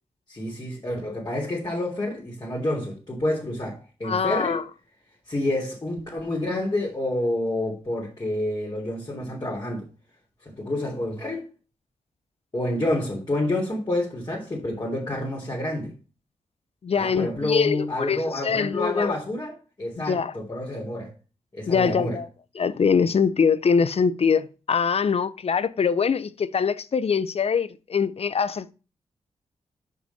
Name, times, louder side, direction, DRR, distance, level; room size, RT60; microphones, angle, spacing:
voice 1, 0.3-4.6 5.3-9.9 10.4-11.5 12.5-15.9 16.9-21.1 21.5-22.2, left 1 dB, 35° left, 3.2 m, -28 dB
voice 2, 4.0-4.6 16.8-19.1 20.1-20.3 21.7-22.3 22.6-28.7, left 6 dB, 55° left, 0.7 m, -23 dB
6.9 x 5.3 x 5.5 m
cardioid pair, 55°, 12 cm